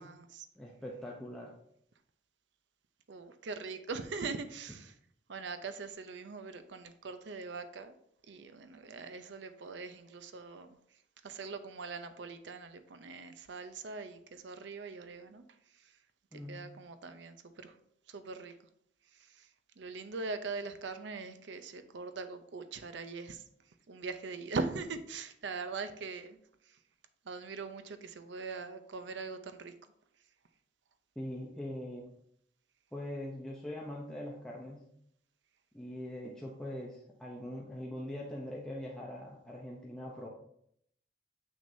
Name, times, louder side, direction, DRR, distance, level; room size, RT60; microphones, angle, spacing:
voice 1, 0.0-0.5 3.1-4.9 5.3-7.9 8.3-10.8 11.2-15.4 16.3-17.7 18.1-18.5 19.2-19.5 19.8-23.4 23.9-26.4 27.3-29.7, right 4 dB, 70° right, 10 dB, 0.6 m, -41 dB
voice 2, 0.6-1.6 16.3-16.6 31.2-32.2 32.9-34.9 35.7-40.3, left 1 dB, 5° left, -3 dB, 0.7 m, -42 dB
7.1 x 6.2 x 2.7 m, 0.70 s
head